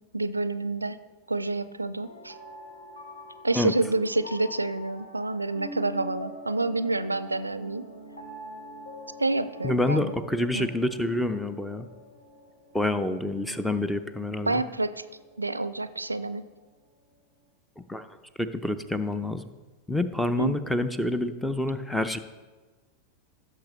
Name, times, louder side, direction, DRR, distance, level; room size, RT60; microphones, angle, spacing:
voice 1, 0.1-1.0 1.3-2.3 3.4-7.9 9.2-10.1 10.5-10.7 14.5-15.0 15.4-16.4 20.4-20.5, right 2 dB, 80° right, 14 dB, 0.4 m, -28 dB
sound 1, 2.0-16.2, left 1 dB, 70° left, 2.7 m, -45 dB
voice 2, 9.6-11.9 12.7-14.6 17.8-18.1 18.4-19.5 19.9-22.2, left 2 dB, 5° left, 11 dB, 0.5 m, -27 dB
16.0 x 6.7 x 3.1 m, 1.3 s
figure-of-eight pair, 90°, 0 cm